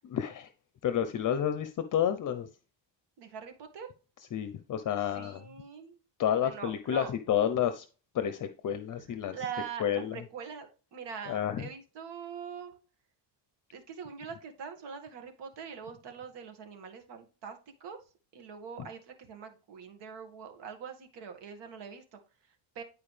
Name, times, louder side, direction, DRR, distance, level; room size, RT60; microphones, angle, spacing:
voice 1, 0.0-0.5 0.8-2.5 4.3-5.4 6.2-7.9 8.1-9.4 9.8-10.2 11.3-11.6, left 9 dB, 45° left, 0.8 m, -30 dB
voice 2, 3.2-3.9 5.0-6.0 6.4-7.1 9.1-12.8 13.7-18.0 18.3-22.8, right 7 dB, 70° right, 2.0 m, -43 dB
11.0 x 4.7 x 3.4 m
cardioid pair, 120°, 44 cm